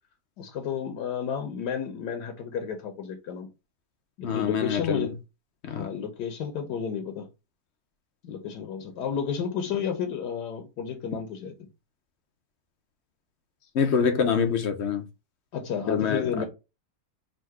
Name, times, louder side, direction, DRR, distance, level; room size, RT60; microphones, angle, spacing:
voice 1, 0.4-3.5 4.2-5.1 5.7-7.3 8.2-11.5 15.5-16.5, left 7 dB, 80° left, 1.4 m, -32 dB
voice 2, 4.2-5.1 5.6-5.9 13.7-15.1 15.9-16.4, left 6 dB, 65° left, 0.7 m, -25 dB
3.7 x 2.5 x 4.6 m
omnidirectional pair, 1.8 m